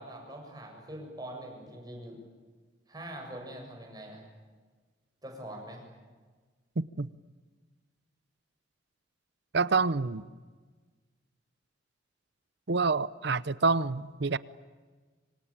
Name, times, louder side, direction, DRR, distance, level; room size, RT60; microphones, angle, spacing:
voice 1, 0.0-2.2 2.9-4.2 5.2-5.8, right 1 dB, 20° right, 1 dB, 7.5 m, -43 dB
voice 2, 6.8-7.1 9.5-10.3 12.7-14.4, right 4 dB, 65° right, 18 dB, 0.8 m, -27 dB
26.0 x 25.0 x 8.9 m, 1.4 s
head